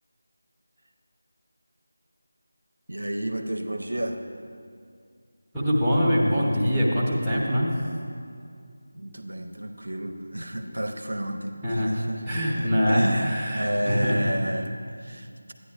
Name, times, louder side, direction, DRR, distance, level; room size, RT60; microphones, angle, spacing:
voice 1, 2.9-4.2 8.9-15.3, right 1 dB, 75° right, 5 dB, 0.6 m, -31 dB
voice 2, 5.5-7.7 11.6-11.9 12.3-14.3, equal, 5° right, -11 dB, 1.0 m, -23 dB
12.0 x 9.5 x 2.4 m, 2.3 s
figure-of-eight pair, 165°, 0 cm